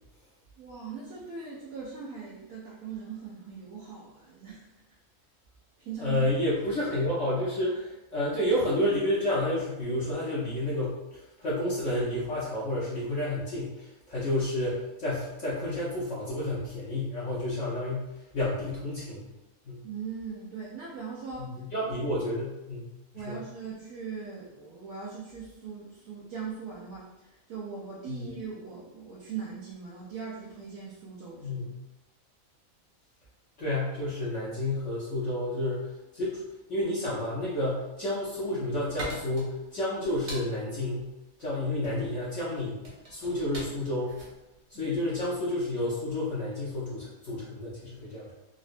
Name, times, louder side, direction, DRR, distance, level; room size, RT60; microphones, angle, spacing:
voice 1, 0.6-4.7 5.8-6.3 6.6-6.8 19.8-21.7 23.1-31.6 44.7-44.9, right 5 dB, 85° right, -5 dB, 1.1 m, -40 dB
voice 2, 6.0-19.3 19.6-19.8 21.4-23.4 28.1-28.3 31.4-31.8 33.6-36.4 36.7-44.2 44.7-48.3, left 1 dB, 65° left, -8 dB, 1.0 m, -30 dB
sound 1, 38.3-45.5, right 1 dB, 35° right, 0.7 m, -44 dB
3.7 x 2.1 x 2.5 m, 0.97 s
omnidirectional pair, 1.5 m